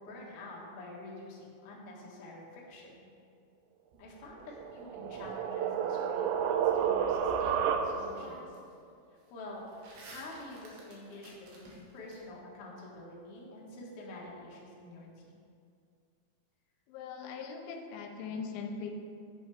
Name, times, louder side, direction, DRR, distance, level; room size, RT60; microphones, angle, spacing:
voice 1, 0.0-3.1 4.0-8.6 9.3-9.6 10.1-15.4, left 2 dB, 70° left, -4 dB, 1.4 m, -47 dB
sound 1, 3.9-5.2 7.4-7.5 7.9-8.7 9.0-12.2, right 2 dB, 70° right, 3.5 m, -53 dB
sound 2, 4.5-8.3, right 8 dB, 85° right, 2.6 m, -30 dB
voice 2, 16.9-18.9, left 5 dB, 85° left, 4 dB, 3.0 m, -40 dB
11.5 x 8.2 x 3.4 m, 2.4 s
omnidirectional pair, 5.5 m